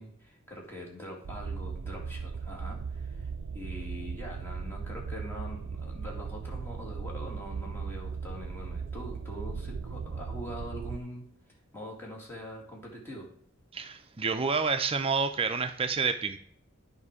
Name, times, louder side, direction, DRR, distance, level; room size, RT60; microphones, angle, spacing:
voice 1, 0.0-13.3, equal, 10° left, -2 dB, 2.3 m, -43 dB
sound 1, 1.2-11.0, right 5 dB, 85° right, 0.4 m, -38 dB
voice 2, 13.7-16.4, right 5 dB, 25° right, 7 dB, 0.5 m, -29 dB
9.8 x 5.2 x 4.8 m, 0.62 s
head